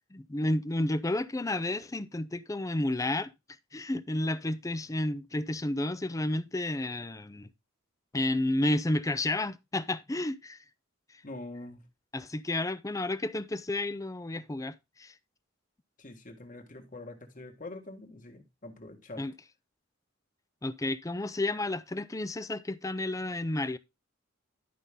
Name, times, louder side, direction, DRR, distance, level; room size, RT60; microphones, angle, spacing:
voice 1, 0.1-3.3 3.7-7.5 8.1-10.6 12.1-15.1 19.2-19.3 20.6-23.8, left 1 dB, 15° left, 0.5 m, -31 dB
voice 2, 11.2-11.8 16.0-19.3, left 2 dB, 40° left, 1.8 m, -44 dB
11.5 x 5.6 x 3.6 m
head